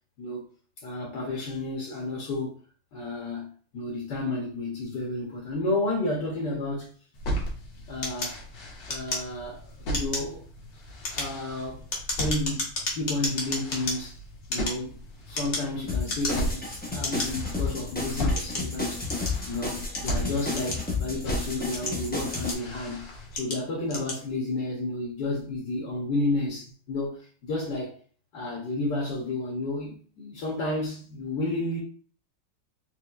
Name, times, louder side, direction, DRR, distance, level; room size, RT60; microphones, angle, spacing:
voice 1, 0.8-2.6 2.9-6.9 7.9-8.4 8.9-10.4 11.1-11.8 12.2-14.2 14.5-14.9 15.3-19.0 19.5-23.0 23.3-28.0 28.3-31.8, left 2 dB, 70° left, 1.5 m, -31 dB
sound 1, 7.1-23.4, equal, 90° left, 1.8 m, -36 dB
sound 2, 8.0-9.6 9.9-10.3 10.9-14.0 14.4-15.7 16.0-16.6 17.0-17.3 17.9-19.4 19.9-21.1 21.6-22.8 23.3-23.6 23.9-24.2, left 2 dB, 45° left, 1.3 m, -32 dB
sound 3, 15.9-22.5, left 3 dB, 10° left, 0.5 m, -32 dB
4.5 x 3.3 x 2.4 m
omnidirectional pair, 1.9 m